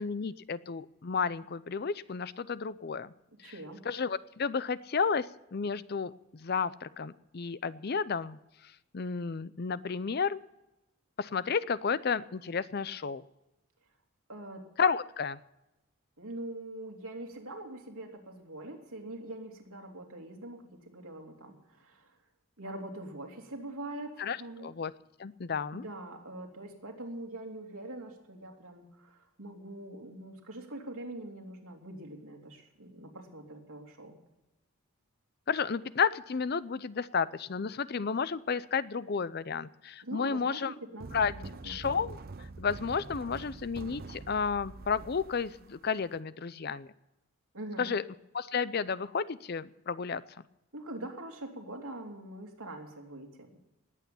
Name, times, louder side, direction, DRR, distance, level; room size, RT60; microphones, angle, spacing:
voice 1, 0.0-3.1 3.4-3.5 3.9-8.4 8.9-10.4 11.2-13.2 14.8-15.4 24.2-24.9 25.2-25.8 35.5-40.7 41.1-41.3 41.6-42.2 42.6-46.9 47.8-48.0 48.3-50.2, left 5 dB, 45° left, 17 dB, 0.5 m, -32 dB
voice 2, 3.4-3.8 14.3-14.7 16.2-22.1 22.6-24.7 25.7-34.2 40.0-41.9 47.5-47.9 50.7-53.5, right 1 dB, 85° right, 1 dB, 3.0 m, -43 dB
sound 1, 41.0-46.2, right 3 dB, 45° right, 0.6 m, -45 dB
19.5 x 8.4 x 7.0 m, 0.97 s
head